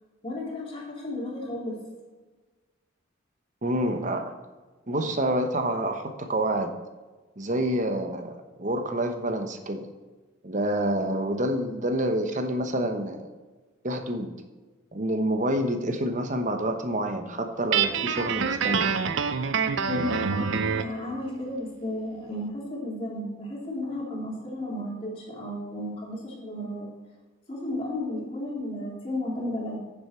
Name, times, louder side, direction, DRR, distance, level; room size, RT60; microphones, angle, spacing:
voice 1, 0.2-1.8 19.9-26.9 27.5-29.8, left 1 dB, 30° left, -4 dB, 3.0 m, -33 dB
voice 2, 3.6-4.3 4.9-6.7 7.4-9.9 10.4-13.3 13.8-14.3 14.9-18.9, right 1 dB, 40° right, 6 dB, 1.0 m, -28 dB
Guitar, 17.7-21.0, right 6 dB, 85° right, 0.6 m, -26 dB
9.6 x 7.1 x 4.4 m, 1.3 s
head